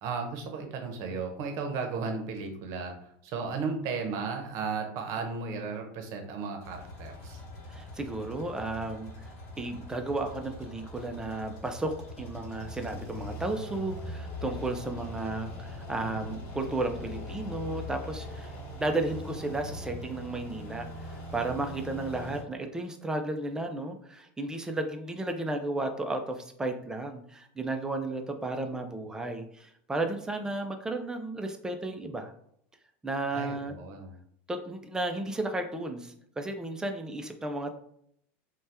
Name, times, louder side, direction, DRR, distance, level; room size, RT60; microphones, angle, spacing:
voice 1, 0.0-7.4 33.3-34.2, right 4 dB, 55° right, 4 dB, 0.7 m, -35 dB
sound 1, 6.6-22.4, left 1 dB, 50° left, 1.2 m, -41 dB
voice 2, 7.7-9.3 9.6-32.3 33.0-33.8 34.5-37.7, right 2 dB, 10° right, 6 dB, 0.4 m, -33 dB
2.7 x 2.2 x 3.4 m, 0.68 s
supercardioid pair, 125°, 7 cm